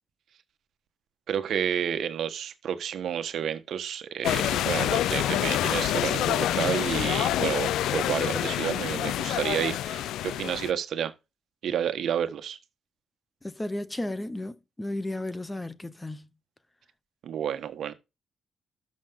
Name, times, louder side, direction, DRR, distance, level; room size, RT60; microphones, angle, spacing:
voice 1, 1.3-11.1 11.6-12.6 17.2-17.9, right 9 dB, 65° right, 1.4 m, -30 dB
sound 1, 4.2-10.7, left 12 dB, 85° left, 0.5 m, -27 dB
voice 2, 13.4-16.3, left 1 dB, 10° left, 0.9 m, -34 dB
13.0 x 6.4 x 3.7 m
cardioid pair, 90°, 0 cm